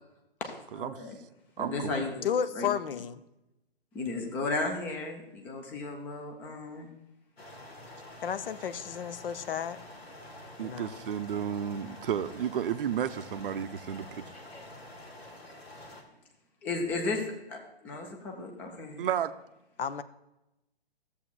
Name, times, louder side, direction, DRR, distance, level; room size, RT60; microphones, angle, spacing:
voice 1, 0.4-1.2 1.6-2.7 3.9-6.9 16.6-17.2 17.5-19.0, left 3 dB, 5° left, 2 dB, 0.4 m, -34 dB
voice 2, 1.6-1.9 10.6-14.2 19.0-19.3, right 9 dB, 60° right, 11 dB, 0.5 m, -32 dB
voice 3, 2.2-3.2 8.2-9.8 10.6-11.0 19.8-20.0, left 8 dB, 65° left, 13 dB, 0.6 m, -32 dB
sound 1, 7.4-16.0, left 1 dB, 80° left, 1.6 m, -48 dB
13.0 x 7.2 x 2.2 m, 0.93 s
figure-of-eight pair, 125°, 31 cm